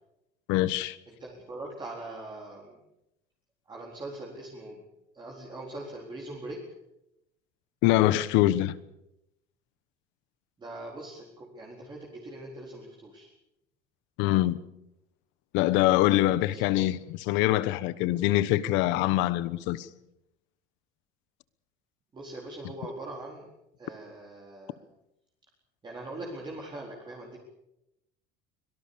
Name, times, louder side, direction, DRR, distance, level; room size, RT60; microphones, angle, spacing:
voice 1, 0.5-1.0 7.8-8.8 14.2-14.6 15.5-19.9, left 15 dB, 70° left, 1.2 m, -24 dB
voice 2, 1.2-2.8 3.7-4.8 5.1-6.6 10.6-13.3 16.5-16.6 22.1-23.5 23.8-24.7 25.8-27.4, right 2 dB, 25° right, 4.4 m, -41 dB
24.0 x 18.5 x 6.9 m
cardioid pair, 140°, 20 cm